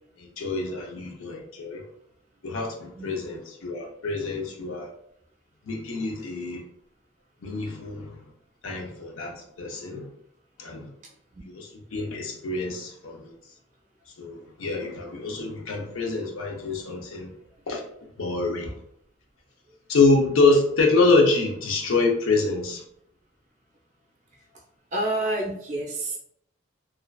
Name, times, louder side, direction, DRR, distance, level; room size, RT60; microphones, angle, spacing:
voice 1, 0.2-1.8 2.4-4.9 5.7-6.6 7.4-8.2 8.6-10.1 10.6-10.9 11.4-13.3 14.2-17.3 17.7-17.8 18.2-18.8 19.9-22.8, left 3 dB, 75° left, 1 dB, 0.5 m, -25 dB
voice 2, 24.9-26.2, right 1 dB, 35° right, -1 dB, 0.5 m, -28 dB
2.4 x 2.3 x 2.2 m, 0.70 s
head